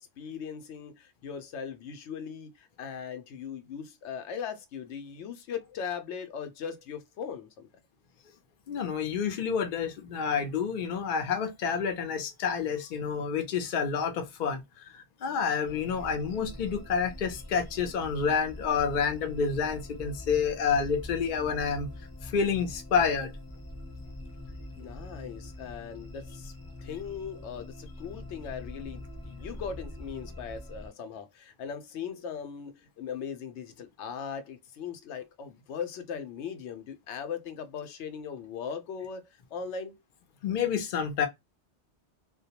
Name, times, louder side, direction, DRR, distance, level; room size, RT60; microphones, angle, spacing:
voice 1, 0.0-7.7 24.8-26.5 26.8-40.0, left 7 dB, 85° left, 0.9 m, -39 dB
voice 2, 8.7-14.6 14.9-21.9 22.2-23.3 40.4-41.3, left 6 dB, 55° left, 0.6 m, -29 dB
sound 1, 15.6-30.9, left 1 dB, 15° left, 0.7 m, -44 dB
2.2 x 2.1 x 2.7 m
omnidirectional pair, 1.1 m